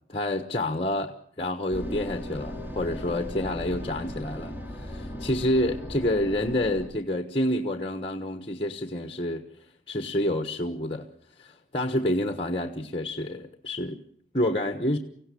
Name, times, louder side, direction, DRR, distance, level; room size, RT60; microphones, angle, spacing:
voice 1, 0.1-9.5 9.9-11.1 11.4-14.0 14.3-15.0, left 1 dB, 30° left, 7 dB, 1.2 m, -28 dB
sound 1, 1.7-6.9, left 1 dB, 10° right, 2.6 m, -37 dB
25.0 x 16.5 x 8.4 m, 0.66 s
head